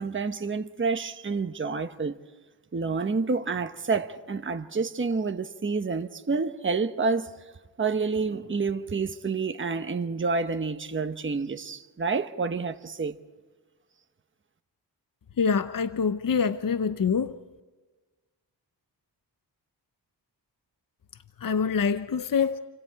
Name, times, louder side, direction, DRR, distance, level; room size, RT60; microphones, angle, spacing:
voice 1, 0.0-2.2 2.7-7.5 7.8-13.2, right 4 dB, 30° right, 1.0 m, -29 dB
voice 2, 15.4-17.3 21.4-22.6, left 6 dB, 50° left, 0.8 m, -25 dB
29.0 x 25.5 x 4.7 m
wide cardioid pair, 90°, 43 cm